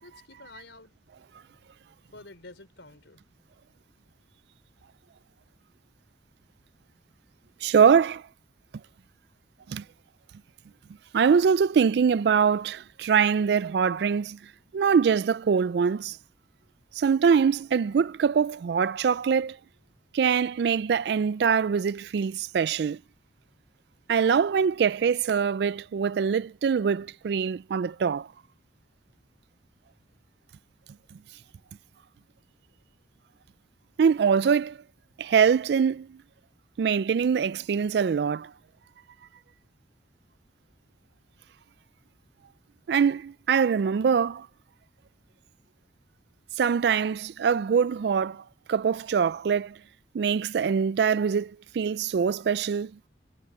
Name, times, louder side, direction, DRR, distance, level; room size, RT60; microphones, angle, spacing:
voice 1, 0.0-1.0 2.1-3.2, left 2 dB, 85° left, 4.4 m, -49 dB
voice 2, 7.6-8.2 9.7-9.8 11.1-14.4 14.7-16.2 16.9-19.6 20.1-23.0 24.1-28.3 34.0-34.8 35.2-36.2 36.8-38.5 42.9-44.5 46.6-49.8 50.1-52.9, right 6 dB, 65° right, 0.3 m, -23 dB
head